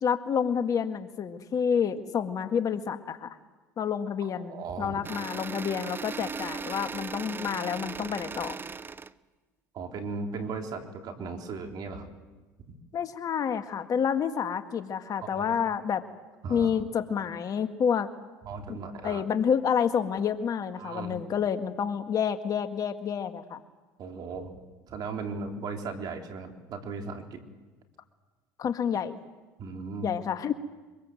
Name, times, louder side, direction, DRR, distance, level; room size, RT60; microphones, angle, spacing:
voice 1, 0.0-3.4 3.8-8.5 12.9-16.0 16.5-18.1 18.7-18.8 19.0-23.6 28.6-29.2 30.0-30.5, left 7 dB, 45° left, 8 dB, 1.8 m, -29 dB
voice 2, 4.2-5.0 9.7-12.1 15.2-15.6 16.4-16.7 18.4-19.2 20.8-21.2 24.0-24.5 24.9-27.4 29.6-30.1, right 4 dB, 50° right, 4 dB, 3.7 m, -37 dB
sound 1, 5.0-9.1, right 5 dB, 25° right, 0.8 m, -38 dB
24.5 x 23.5 x 7.8 m, 1.2 s
supercardioid pair, 85°, 9 cm